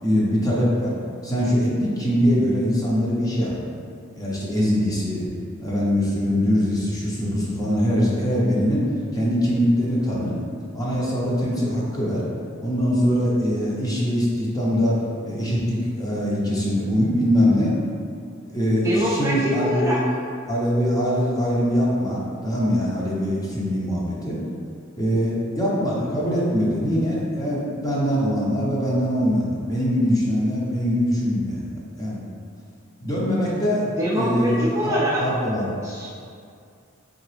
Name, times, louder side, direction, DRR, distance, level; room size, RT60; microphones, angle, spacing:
voice 1, 0.0-1.0 1.2-3.5 4.1-5.3 5.6-8.8 9.1-10.4 10.7-12.3 12.6-15.0 15.2-17.7 18.4-20.0 20.5-24.4 24.9-32.3 33.0-33.9 34.1-35.7, equal, 20° left, -6 dB, 0.8 m, -22 dB
voice 2, 18.8-20.0 34.0-35.2 35.8-36.1, equal, 15° right, -7 dB, 0.4 m, -24 dB
3.9 x 3.4 x 3.3 m, 2.3 s
head